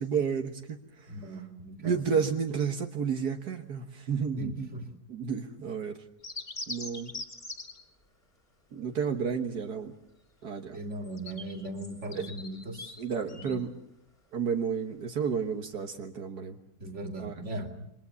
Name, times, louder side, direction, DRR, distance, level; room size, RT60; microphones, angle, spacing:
voice 1, 0.0-1.1 1.8-4.7 5.1-5.9 6.7-7.1 8.7-9.9 10.4-10.8 12.2-12.3 13.0-13.7 14.3-16.6 17.2-17.3, right 6 dB, 80° right, 4 dB, 2.0 m, -31 dB
voice 2, 1.1-2.1 4.4-4.9 10.7-13.6 16.8-17.9, right 1 dB, 45° right, 5 dB, 3.1 m, -39 dB
sound 1, 6.2-7.8 10.9-13.6, left 2 dB, 35° left, 3.5 m, -42 dB
28.5 x 24.0 x 7.0 m, 0.79 s
omnidirectional pair, 1.7 m